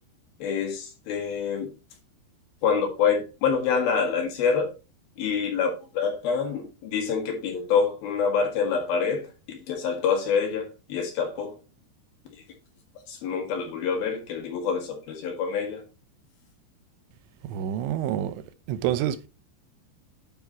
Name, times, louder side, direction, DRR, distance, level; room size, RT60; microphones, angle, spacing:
voice 1, 0.4-1.7 2.6-4.7 5.2-11.5 13.1-15.8, left 6 dB, 65° left, 3.4 m, -26 dB
voice 2, 17.4-18.4 18.7-19.3, right 11 dB, 90° right, 3.0 m, -27 dB
9.4 x 4.8 x 4.3 m
omnidirectional pair, 5.1 m